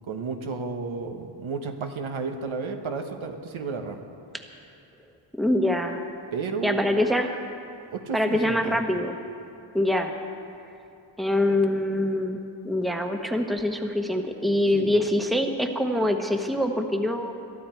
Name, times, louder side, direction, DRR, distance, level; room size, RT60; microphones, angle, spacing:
voice 1, 0.1-4.0 6.3-6.9 7.9-8.8 14.7-15.0, right 4 dB, 80° right, 5 dB, 1.3 m, -32 dB
voice 2, 5.4-6.0 6.6-7.3 8.1-9.1 9.7-10.2 11.2-12.4 12.6-17.3, left 1 dB, ahead, 4 dB, 1.0 m, -24 dB
22.5 x 12.5 x 4.5 m, 2.6 s
wide cardioid pair, 120°, 47 cm